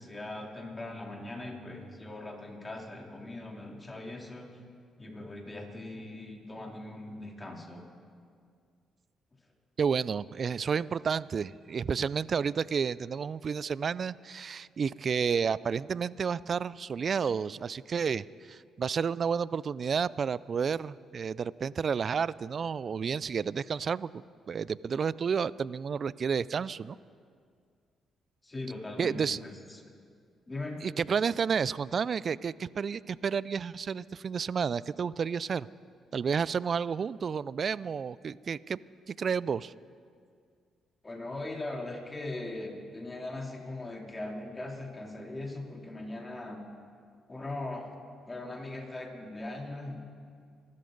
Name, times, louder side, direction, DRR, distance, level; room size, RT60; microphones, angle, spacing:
voice 1, 0.0-4.5 5.0-7.9 28.4-29.8 30.5-30.8 41.0-46.6 47.3-47.9 48.3-50.0, left 2 dB, 25° left, 0 dB, 3.2 m, -40 dB
voice 2, 9.8-27.0 29.0-29.4 30.8-35.7 36.1-38.8 39.1-39.7, right 6 dB, 50° right, 20 dB, 0.3 m, -31 dB
25.5 x 13.0 x 3.9 m, 2.2 s
supercardioid pair, 60°, 0 cm